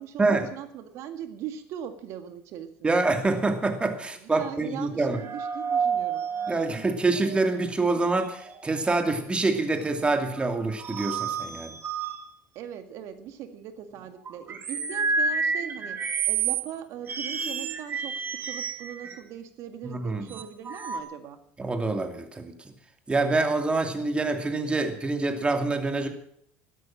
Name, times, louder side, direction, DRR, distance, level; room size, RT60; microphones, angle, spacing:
voice 1, 0.0-3.0 4.2-6.3 12.6-21.4, right 9 dB, 60° right, 8 dB, 1.9 m, -40 dB
voice 2, 2.8-5.2 6.5-11.8 19.8-20.2 21.6-22.5 23.1-26.1, right 3 dB, 20° right, 6 dB, 2.6 m, -26 dB
sound 1, 5.1-7.6 8.2-8.7 9.8-9.9 10.4-12.2 14.0-16.7 17.1-19.2 20.3-21.0, right 5 dB, 35° right, 2.5 m, -30 dB
12.5 x 12.0 x 7.6 m, 0.70 s
hypercardioid pair, 80°, 6 cm